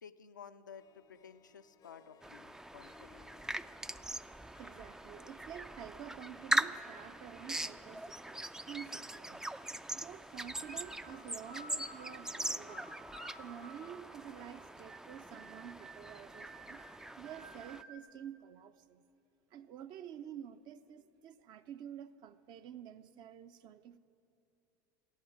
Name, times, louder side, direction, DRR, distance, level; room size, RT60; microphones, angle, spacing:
voice 1, 0.0-3.3, left 7 dB, 90° left, 8 dB, 0.5 m, -54 dB
Harp, 0.7-14.7, left 8 dB, 40° left, 0.6 m, -66 dB
sound 1, 2.2-17.8, right 1 dB, 5° right, 0.3 m, -41 dB
voice 2, 4.6-9.5 9.9-13.0 13.4-16.8 17.2-19.0 19.5-24.0, right 9 dB, 50° right, 11 dB, 0.6 m, -49 dB
sound 2, 10.4-18.0, right 2 dB, 75° right, 1.5 m, -55 dB
13.5 x 8.6 x 9.3 m, 2.7 s
hypercardioid pair, 75°, 10 cm